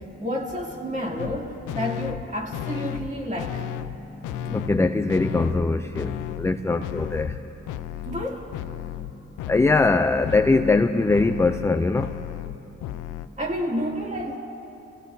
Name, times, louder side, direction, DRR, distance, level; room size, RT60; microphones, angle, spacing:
voice 1, 0.0-3.7 6.7-6.8 8.1-8.5 13.4-14.4, equal, 25° right, -1 dB, 2.6 m, -30 dB
sound 1, 1.2-1.4 1.7-2.2 2.5-3.1 3.4-4.0 4.2-4.8 5.1-5.7 5.9-6.5 6.8-7.4 7.7-8.3 8.5-9.1 9.4-13.3, left 11 dB, 85° left, 0.6 m, -33 dB
voice 2, 4.5-7.3 9.5-12.1, left 3 dB, 10° left, 8 dB, 0.4 m, -21 dB
29.5 x 17.0 x 2.7 m, 2.9 s
cardioid pair, 90°, 30 cm